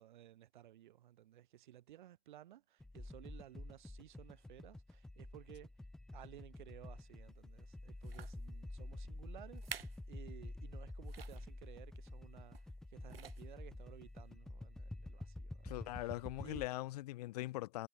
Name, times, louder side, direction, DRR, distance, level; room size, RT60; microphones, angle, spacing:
voice 1, 0.0-5.7 6.1-16.7, right 12 dB, 50° right, 5.9 m, -57 dB
sound 1, 2.8-16.7, left 1 dB, ahead, 0.5 m, -49 dB
sound 2, 7.3-7.5 8.0-8.4 9.1-9.2 9.5-10.1 10.4-10.5 11.0-11.5 12.5-12.8 13.1-13.6 14.3-14.4, right 8 dB, 70° right, 2.5 m, -50 dB
voice 2, 15.6-17.9, left 17 dB, 40° left, 1.6 m, -41 dB
hypercardioid pair, 130°, 31 cm